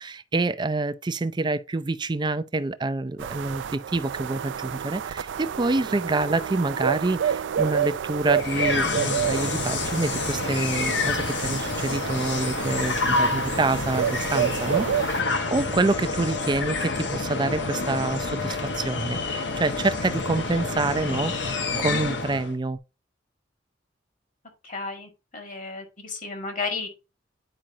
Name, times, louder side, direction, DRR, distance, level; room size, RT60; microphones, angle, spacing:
voice 1, 0.0-22.8, right 2 dB, 25° right, 0.5 m, -27 dB
sound 1, 3.2-15.2, right 8 dB, 85° right, 0.4 m, -30 dB
sound 2, 8.3-22.5, left 3 dB, 75° left, 1.4 m, -28 dB
voice 2, 24.6-26.9, left 4 dB, 45° left, 2.0 m, -33 dB
8.9 x 5.1 x 2.7 m
head